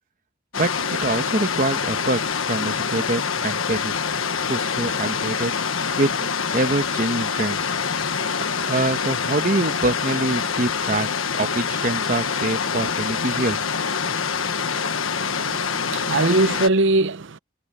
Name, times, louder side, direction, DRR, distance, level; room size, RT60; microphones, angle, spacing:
sound 1, 0.5-16.7, left 6 dB, 80° left, 1.4 m, -25 dB
voice 1, 0.6-2.2 2.5-4.0 4.5-5.5 6.0-6.1 6.5-7.7 8.7-11.1 11.3-14.1, right 2 dB, 40° right, 1.4 m, -25 dB
voice 2, 15.2-17.4, right 2 dB, 65° right, 0.8 m, -21 dB
head